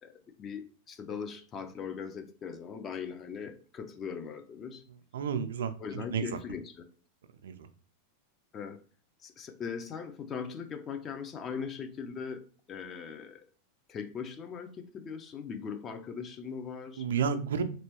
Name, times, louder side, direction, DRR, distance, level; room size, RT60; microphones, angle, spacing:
voice 1, 0.0-4.8 5.8-6.9 8.5-8.8 9.2-13.5 13.9-17.1, left 6 dB, 25° left, 0.4 m, -40 dB
voice 2, 5.1-6.3 7.4-7.7 17.0-17.6, right 7 dB, 60° right, 0.4 m, -31 dB
3.0 x 2.9 x 2.9 m
figure-of-eight pair, 90°, 0 cm